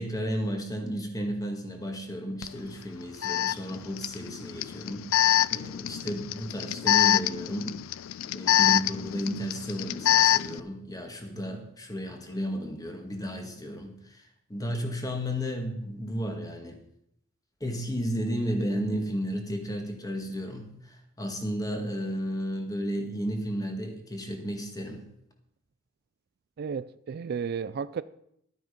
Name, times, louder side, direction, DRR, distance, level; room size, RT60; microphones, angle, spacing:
voice 1, 0.0-7.8 8.3-16.8 17.6-25.0, equal, 20° left, 4 dB, 1.8 m, -33 dB
Alarm, 2.4-2.5 3.2-10.6, left 12 dB, 85° left, 0.4 m, -25 dB
voice 2, 26.6-28.0, right 6 dB, 50° right, 16 dB, 0.3 m, -33 dB
12.0 x 9.3 x 5.2 m, 0.75 s
head